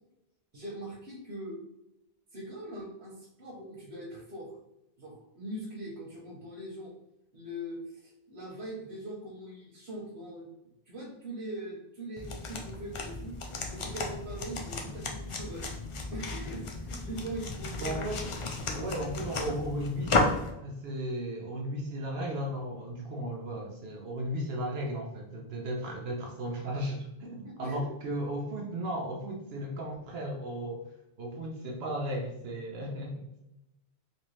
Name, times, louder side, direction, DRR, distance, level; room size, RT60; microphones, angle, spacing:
voice 1, 0.5-1.6 2.3-4.6 5.0-6.9 7.3-10.5 10.8-13.4 13.7-15.7 16.1-18.2 27.4-27.9, right 1 dB, 90° right, -3 dB, 1.1 m, -41 dB
sound 1, 12.2-20.5, left 3 dB, 50° left, 0.4 m, -34 dB
voice 2, 17.8-18.2 18.7-20.3 20.6-30.8 31.2-33.4, right 1 dB, 70° right, 0 dB, 0.8 m, -35 dB
2.9 x 2.7 x 3.1 m, 0.88 s
omnidirectional pair, 1.1 m